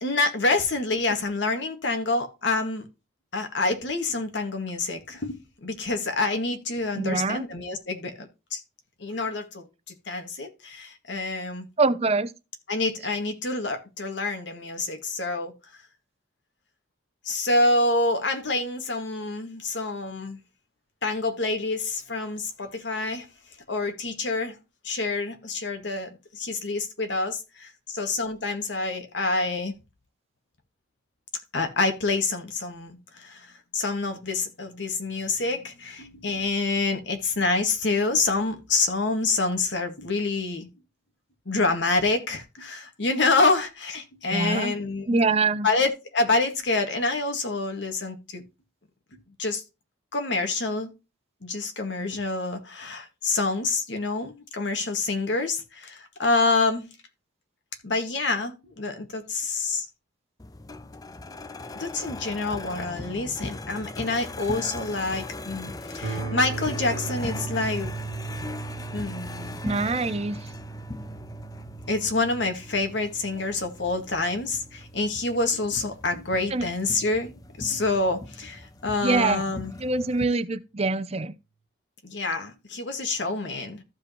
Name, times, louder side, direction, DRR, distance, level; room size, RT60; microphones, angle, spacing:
voice 1, 0.0-2.9 3.3-8.6 9.0-11.7 12.7-15.5 17.3-20.4 21.0-23.3 23.7-24.6 24.8-29.7 31.5-40.7 41.5-45.2 45.6-48.5 49.4-49.6 50.1-50.9 51.4-56.9 57.8-59.9 61.7-67.9 68.9-69.6 71.9-79.7 82.0-83.8, left 3 dB, 65° left, 1.9 m, -27 dB
voice 2, 7.0-7.4 11.8-12.3 44.3-44.8 45.1-45.7 69.6-70.4 76.5-76.7 79.0-79.4 79.8-81.3, right 3 dB, 35° right, 0.6 m, -24 dB
sound 1, 60.4-80.3, left 2 dB, 20° left, 0.5 m, -39 dB
sound 2, 66.0-75.9, right 4 dB, 80° right, 1.4 m, -38 dB
14.5 x 5.1 x 3.0 m
head